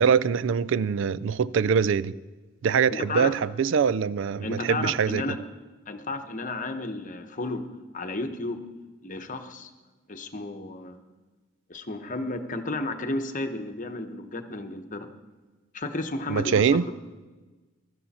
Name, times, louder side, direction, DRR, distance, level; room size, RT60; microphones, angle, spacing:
voice 1, 0.0-2.2 2.6-5.2 16.3-16.8, right 6 dB, 60° right, 0.4 m, -23 dB
voice 2, 2.9-3.4 4.4-5.4 5.9-7.6 7.9-8.6 9.0-9.7 10.1-11.0 11.7-15.1 15.7-16.8, left 2 dB, 40° left, 1.0 m, -32 dB
16.0 x 12.5 x 4.2 m
head